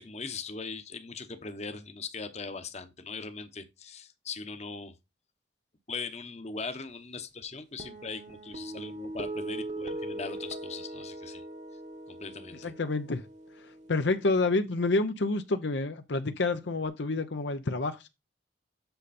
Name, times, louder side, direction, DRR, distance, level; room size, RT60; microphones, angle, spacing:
voice 1, 0.0-4.9 5.9-11.4 12.1-12.7, left 4 dB, 35° left, 1.0 m, -40 dB
sound 1, 7.8-14.4, right 1 dB, 40° right, 1.1 m, -40 dB
voice 2, 12.6-13.2 13.9-18.1, left 3 dB, 75° left, 0.7 m, -28 dB
7.9 x 6.5 x 4.2 m
head